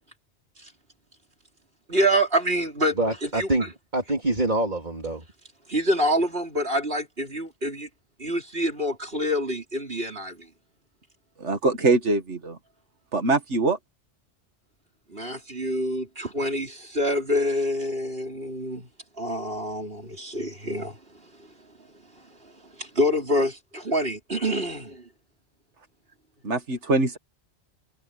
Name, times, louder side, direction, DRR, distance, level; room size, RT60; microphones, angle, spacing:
voice 1, 1.9-3.5 5.7-7.9 8.2-10.5 15.1-18.9 19.2-21.0 22.8-25.0, equal, 60° right, 5.1 m, -26 dB
voice 2, 3.0-5.2, right 2 dB, 40° right, 3.4 m, -26 dB
voice 3, 11.4-12.6 13.1-13.8 26.4-27.2, right 3 dB, 90° right, 2.2 m, -23 dB
omnidirectional pair, 1.2 m